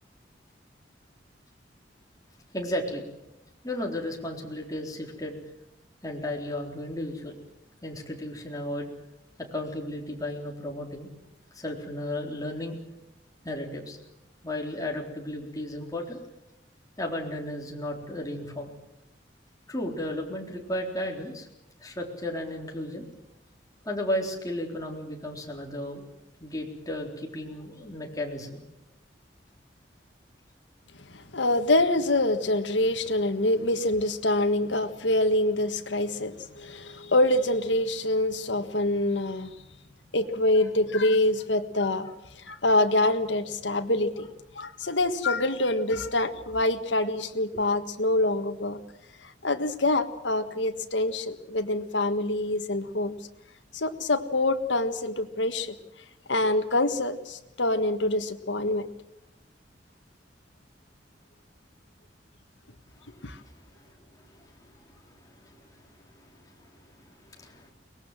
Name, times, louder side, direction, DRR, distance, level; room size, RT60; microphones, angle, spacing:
voice 1, 2.5-3.1 3.6-5.4 6.0-7.3 7.8-8.9 9.5-11.1 11.5-12.8 13.4-14.0 14.4-16.2 17.0-18.7 19.7-21.5 21.8-23.1 23.8-26.1 26.4-28.6 42.0-42.1 44.8-44.9 47.5-47.6 62.9-67.7, left 1 dB, 20° left, 0 dB, 4.0 m, -35 dB
voice 2, 31.0-39.6 40.1-42.1 42.3-44.3 44.5-48.8 49.2-53.1 53.7-55.8 56.3-58.9 63.2-63.4, left 2 dB, 85° left, 8 dB, 1.7 m, -25 dB
23.0 x 20.0 x 7.6 m, 0.89 s
head